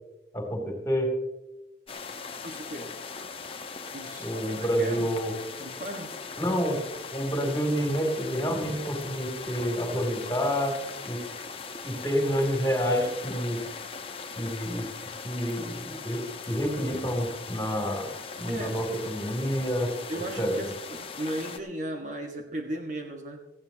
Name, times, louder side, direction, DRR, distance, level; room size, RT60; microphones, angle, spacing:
voice 1, 0.3-1.1 4.2-5.3 6.4-6.8 7.1-10.7 11.1-11.2 11.8-13.6 14.4-14.9 15.2-18.1 18.4-19.9 20.4-20.6, equal, 15° left, 1 dB, 3.1 m, -28 dB
sound 1, 1.9-21.6, left 5 dB, 30° left, 1.1 m, -40 dB
voice 2, 2.4-2.9 3.9-5.1 5.6-6.1 18.4-18.8 20.1-23.4, right 1 dB, 40° right, 2 dB, 1.7 m, -36 dB
18.5 x 15.0 x 3.0 m, 1.0 s
head